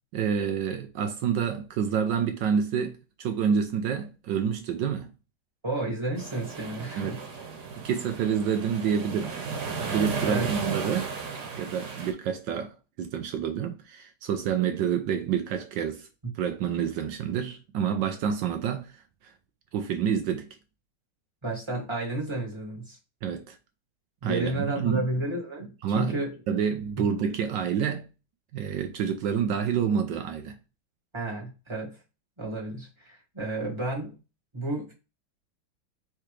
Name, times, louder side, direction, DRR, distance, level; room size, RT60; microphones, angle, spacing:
voice 1, 0.1-5.1 7.0-7.2 7.8-9.3 9.9-11.1 11.6-16.1 16.3-19.3 19.7-20.5 23.2-23.6 24.2-25.1 25.8-26.2 26.5-28.0 28.5-30.6, right 7 dB, 70° right, 1.1 m, -28 dB
voice 2, 5.6-7.2 10.2-10.5 21.4-23.0 24.2-26.3 31.1-32.0 32.4-34.1 34.5-34.9, right 2 dB, 15° right, 1.6 m, -31 dB
sound 1, 6.2-12.1, right 5 dB, 90° right, 2.1 m, -34 dB
4.8 x 3.4 x 3.1 m
omnidirectional pair, 2.3 m